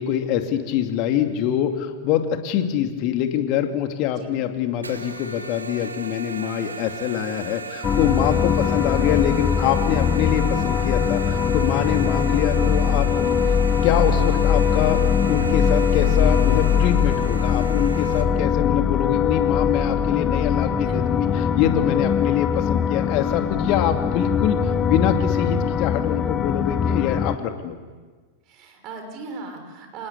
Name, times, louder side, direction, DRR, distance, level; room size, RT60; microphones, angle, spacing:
voice 1, 0.0-13.4 13.8-15.0 15.3-27.7, left 10 dB, 40° left, 6 dB, 2.6 m, -24 dB
sound 1, 4.8-18.2, right 5 dB, 75° right, 2.0 m, -35 dB
sound 2, 7.8-27.4, left 7 dB, 25° left, 1.3 m, -21 dB
voice 2, 28.5-30.1, right 4 dB, 40° right, 5 dB, 6.0 m, -38 dB
26.5 x 20.5 x 8.5 m, 1.4 s
figure-of-eight pair, 90°, 0 cm